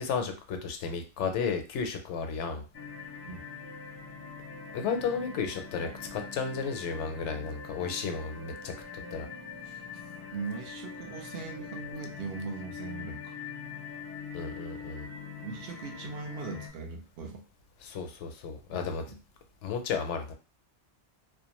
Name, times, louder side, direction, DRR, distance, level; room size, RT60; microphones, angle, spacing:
voice 1, 0.0-2.6 4.7-8.7 9.1-9.3 14.3-15.1 17.8-19.0 19.6-20.3, left 5 dB, 80° left, 5 dB, 0.9 m, -33 dB
sound 1, 2.7-16.7, left 5 dB, 30° left, 0.4 m, -43 dB
voice 2, 10.3-13.3 15.4-17.4 18.7-18.8 19.1-19.2, right 4 dB, 65° right, 1 dB, 0.8 m, -40 dB
2.4 x 2.2 x 2.9 m, 0.32 s
omnidirectional pair, 1.2 m